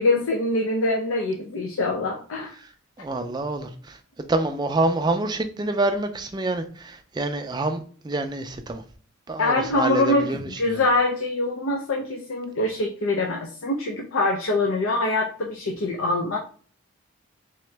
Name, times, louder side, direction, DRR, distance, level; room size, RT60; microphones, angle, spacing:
voice 1, 0.0-2.5 9.4-16.4, left 2 dB, 65° left, 0.5 m, -24 dB
voice 2, 3.0-4.0 4.3-8.8 9.3-10.4 10.7-10.8, right 2 dB, 20° right, 0.3 m, -26 dB
3.5 x 3.0 x 3.3 m
head